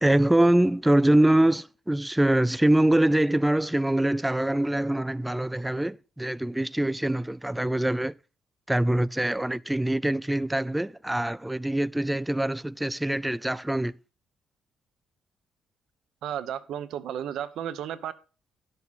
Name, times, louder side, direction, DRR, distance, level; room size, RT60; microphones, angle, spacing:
voice 1, 0.0-8.1 8.7-13.9, right 1 dB, 10° right, 0.3 m, -24 dB
voice 2, 16.2-18.1, right 10 dB, 80° right, 0.8 m, -33 dB
11.0 x 6.8 x 4.1 m
cardioid pair, 90°, 0 cm